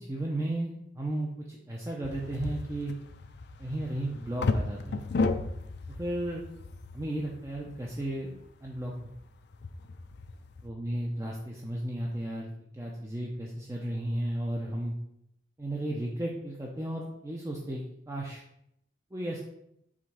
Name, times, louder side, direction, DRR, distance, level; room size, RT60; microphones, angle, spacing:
voice 1, 0.0-2.9 3.6-5.0 5.9-6.4 6.9-8.3 8.6-9.1 10.6-12.5 12.7-14.9 15.6-18.4 19.1-19.4, right 1 dB, 15° right, -2 dB, 0.6 m, -34 dB
sound 1, 2.0-10.7, left 3 dB, 65° left, 0.5 m, -35 dB
5.0 x 3.5 x 5.6 m, 0.77 s
head